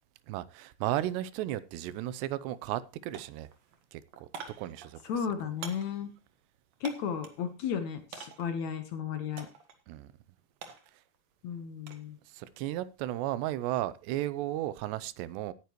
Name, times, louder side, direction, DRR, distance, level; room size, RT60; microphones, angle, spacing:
voice 1, 0.3-3.5 3.9-4.3 4.6-5.0 9.9-10.1 12.3-15.5, right 14 dB, 80° right, 2.8 m, -34 dB
sound 1, 1.9-2.0 2.4-2.9 3.1-7.5 8.1-8.6 9.4-9.8 10.1-12.1 12.4-12.9, right 6 dB, 55° right, 2.0 m, -47 dB
voice 2, 5.0-6.1 6.8-9.5 11.4-12.2, left 7 dB, 80° left, 1.6 m, -34 dB
17.5 x 9.5 x 3.0 m
omnidirectional pair, 5.0 m